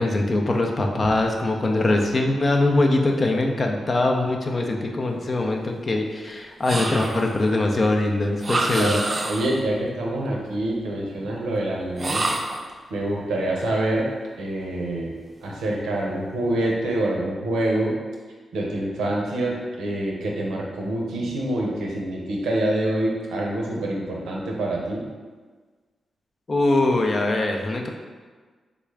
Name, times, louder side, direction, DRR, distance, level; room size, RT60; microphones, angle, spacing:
voice 1, 0.0-9.0 26.5-27.9, left 2 dB, 45° left, 2 dB, 0.5 m, -22 dB
sound 1, 6.6-7.4 8.4-9.6 12.0-12.7, right 2 dB, 45° right, 0.4 m, -27 dB
voice 2, 8.7-12.2 12.9-14.1 14.4-17.9 18.5-25.0, right 1 dB, 90° right, -2 dB, 0.6 m, -26 dB
3.6 x 2.4 x 3.2 m, 1.4 s
supercardioid pair, 50°, 0 cm